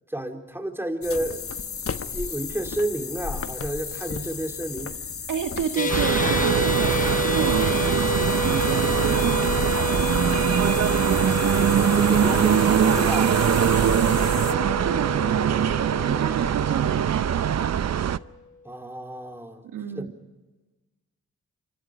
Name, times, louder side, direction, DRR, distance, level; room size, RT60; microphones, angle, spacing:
voice 1, 0.1-1.4 1.9-4.9 11.8-13.3 18.6-19.6 20.0-20.1, right 1 dB, 5° right, 4 dB, 4.1 m, -31 dB
sound 1, 1.0-14.5, left 6 dB, 45° left, 1.2 m, -34 dB
voice 2, 5.3-7.0 7.3-13.4 13.6-14.2 14.8-15.5 15.9-17.8 19.7-20.1, right 8 dB, 80° right, 6 dB, 1.8 m, -32 dB
sound 2, 5.8-18.1, left 4 dB, 25° left, 0.7 m, -29 dB
sound 3, 5.9-18.2, right 9 dB, 55° right, 0.8 m, -22 dB
28.5 x 25.0 x 5.1 m, 1.2 s
supercardioid pair, 45°, 32 cm